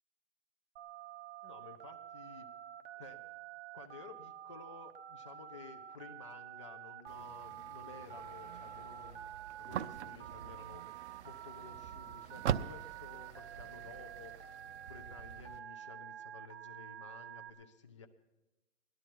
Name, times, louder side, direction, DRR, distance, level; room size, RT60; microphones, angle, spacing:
Telephone, 0.8-17.5, right 11 dB, 45° right, 1.0 m, -49 dB
voice 1, 1.4-2.5 2.9-3.3 3.7-9.2 9.6-10.8 11.2-14.3 14.9-18.1, left 5 dB, 25° left, 6 dB, 0.4 m, -53 dB
sound 1, 7.1-15.6, right 9 dB, 65° right, 0.6 m, -43 dB
18.0 x 11.5 x 4.5 m, 1.0 s
hypercardioid pair, 170°, 38 cm